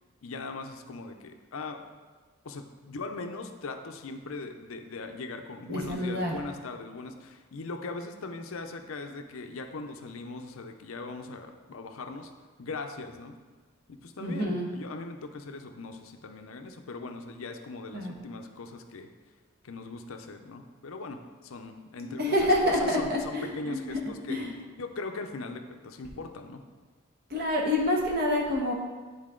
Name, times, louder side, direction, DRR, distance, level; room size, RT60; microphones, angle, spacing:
voice 1, 0.2-1.8 2.4-12.3 12.6-13.3 13.9-19.1 19.6-22.2 22.6-24.4 24.8-26.6, left 3 dB, 65° left, 6 dB, 0.6 m, -40 dB
voice 2, 5.7-6.3 14.2-14.7 17.9-18.1 22.0-23.8 24.3-24.5 27.3-28.7, left 1 dB, 45° right, -2 dB, 1.3 m, -27 dB
9.6 x 4.0 x 3.8 m, 1.4 s
head